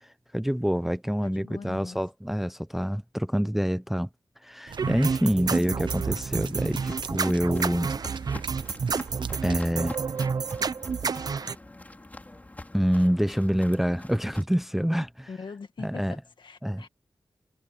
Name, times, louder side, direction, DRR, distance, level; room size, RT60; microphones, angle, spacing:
voice 1, 0.0-4.1 4.4-7.9 9.4-10.0 12.7-15.3 15.8-16.1 16.6-16.8, equal, 5° right, 0.4 m, -26 dB
voice 2, 1.2-2.0 5.5-5.9 15.3-16.9, left 5 dB, 70° left, 1.9 m, -42 dB
sound 1, 4.7-9.7, right 6 dB, 70° right, 0.9 m, -43 dB
sound 2, 4.8-11.5, right 5 dB, 50° right, 0.6 m, -29 dB
Walk footsteps, 5.9-14.4, left 2 dB, 20° left, 4.3 m, -46 dB
wide cardioid pair, 140°, 8 cm